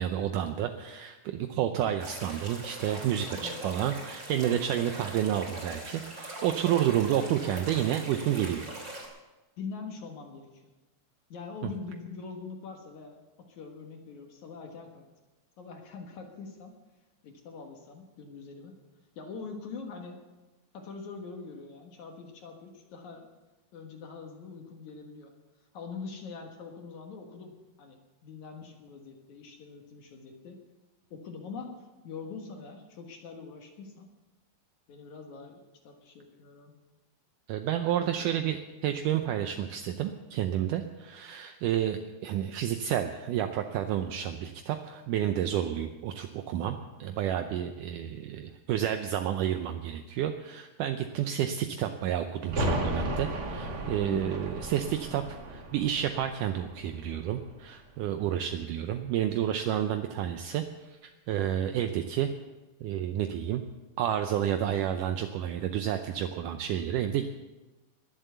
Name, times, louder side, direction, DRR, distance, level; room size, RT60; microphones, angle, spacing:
voice 1, 0.0-8.6 37.5-62.3 62.8-63.6 64.0-67.3, right 10 dB, 75° right, 7 dB, 2.1 m, -30 dB
sound 1, 2.0-9.1, right 2 dB, 25° right, 3.3 m, -41 dB
voice 2, 9.6-10.7 11.3-13.2 13.5-15.0 15.6-16.7 17.2-18.7 19.2-20.2 20.7-23.3 23.7-25.3 25.7-27.5 27.8-30.6 31.1-31.8 32.0-34.1 34.9-36.7 38.0-38.4 54.0-54.5, left 4 dB, 60° left, 3 dB, 2.7 m, -43 dB
sound 2, 52.4-58.0 58.3-58.4, right 1 dB, 50° right, 1.2 m, -35 dB
21.5 x 7.5 x 6.8 m, 1.1 s
omnidirectional pair, 4.1 m